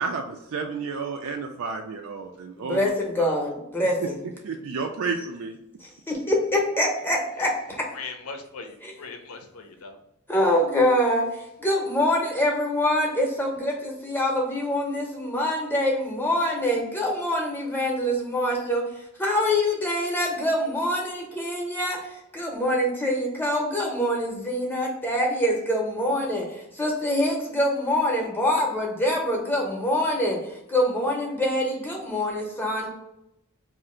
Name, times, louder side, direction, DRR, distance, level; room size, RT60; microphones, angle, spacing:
voice 1, 0.0-2.9 3.2-3.3 4.0-4.1 4.4-5.6, right 4 dB, 70° right, 3 dB, 0.4 m, -31 dB
voice 2, 2.6-4.2 5.8-7.9 8.8-9.0 10.3-32.9, left 1 dB, 10° left, -1 dB, 0.7 m, -25 dB
voice 3, 8.0-10.0, left 4 dB, 80° left, 5 dB, 0.6 m, -39 dB
2.7 x 2.5 x 4.3 m, 0.86 s
head